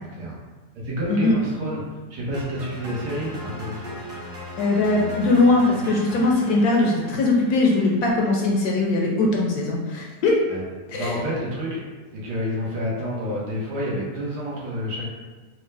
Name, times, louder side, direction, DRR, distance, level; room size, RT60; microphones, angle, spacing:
voice 1, 0.8-1.8 2.1-3.7 10.5-10.6 10.9-11.8 12.1-15.0, equal, 75° right, -5 dB, 1.6 m, -29 dB
sound 1, 2.3-8.5, equal, 45° right, 0.7 m, -37 dB
voice 2, 4.6-10.4 10.9-11.2, left 2 dB, 70° left, -1 dB, 1.0 m, -20 dB
4.3 x 2.2 x 3.2 m, 1.3 s
omnidirectional pair, 1.9 m